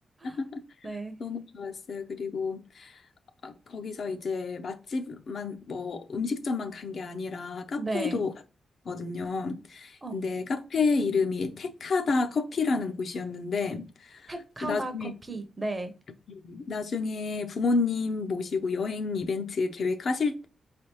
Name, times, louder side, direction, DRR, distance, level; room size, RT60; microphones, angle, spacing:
voice 1, 0.2-0.6 1.2-2.9 3.4-8.3 8.9-14.3 14.6-15.1 16.4-20.5, left 4 dB, 50° left, 0.5 m, -30 dB
voice 2, 0.8-1.2 7.8-8.2 10.0-10.1 14.3-15.9, right 2 dB, 20° right, 0.6 m, -34 dB
4.6 x 3.3 x 2.9 m
wide cardioid pair, 165°, 0 cm